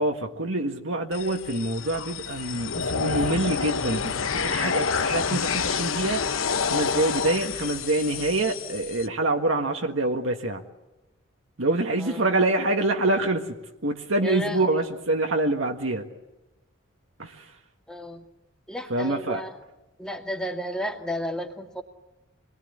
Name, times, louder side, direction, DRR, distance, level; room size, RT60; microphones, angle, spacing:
voice 1, 0.0-10.6 11.6-13.6 13.8-16.0 17.2-17.6 18.9-19.4, right 2 dB, 75° right, 3 dB, 1.6 m, -26 dB
sound 1, 1.1-9.1, left 6 dB, 85° left, 0.9 m, -28 dB
voice 2, 14.2-14.8 17.9-18.3 18.7-19.6 20.0-21.8, equal, 5° left, 2 dB, 2.1 m, -33 dB
27.0 x 21.0 x 9.8 m, 1.0 s
head